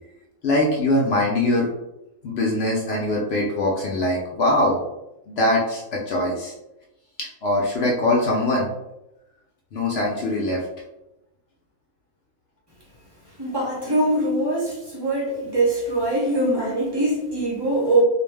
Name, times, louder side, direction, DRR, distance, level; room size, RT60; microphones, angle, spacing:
voice 1, 0.4-1.7 2.2-4.8 5.3-6.5 7.2-8.7 9.7-10.6, left 1 dB, 70° left, -2 dB, 0.6 m, -22 dB
voice 2, 13.4-18.0, right 1 dB, 35° right, -5 dB, 0.4 m, -22 dB
2.5 x 2.0 x 3.3 m, 0.91 s
omnidirectional pair, 1.6 m